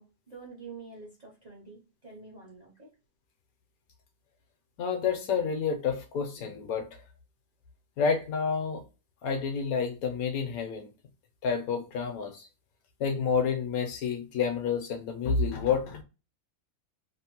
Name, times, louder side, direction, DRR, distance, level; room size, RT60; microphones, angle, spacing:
voice 1, 0.0-2.9, right 4 dB, 45° right, 0.5 m, -47 dB
voice 2, 4.8-7.0 8.0-8.8 9.2-10.9 11.4-12.5 13.0-16.0, left 6 dB, 75° left, 1.0 m, -29 dB
3.0 x 2.0 x 2.8 m
omnidirectional pair, 1.6 m